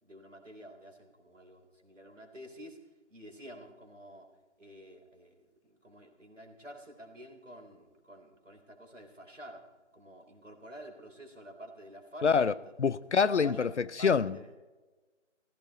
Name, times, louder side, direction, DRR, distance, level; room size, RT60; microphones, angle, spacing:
voice 1, 0.0-2.8 3.1-4.3 4.6-9.7 9.9-12.7 13.3-13.7 14.0-14.5, equal, 80° right, 3.6 m, -50 dB
voice 2, 12.2-12.5 12.8-14.6, left 5 dB, 65° left, 0.7 m, -26 dB
17.5 x 15.0 x 4.2 m
figure-of-eight pair, 150°, 37 cm